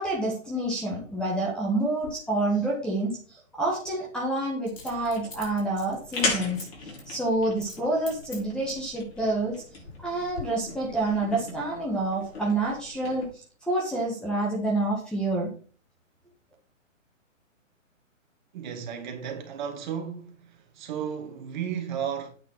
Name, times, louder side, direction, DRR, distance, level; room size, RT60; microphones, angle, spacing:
voice 1, 0.0-6.7 7.1-9.6 10.0-15.5, right 2 dB, ahead, 1.3 m, -28 dB
Coin (dropping), 2.0-2.1 4.7-6.7 7.0-7.1 7.6-7.8 8.1-8.9 9.5-10.0 10.3-10.4, left 4 dB, 70° left, 6.1 m, -43 dB
sound 1, 4.7-13.3, left 3 dB, 50° left, 5.6 m, -38 dB
voice 2, 18.5-20.3 20.8-22.3, right 8 dB, 35° right, 2.3 m, -33 dB
8.9 x 5.8 x 5.9 m
hypercardioid pair, 150°, 39 cm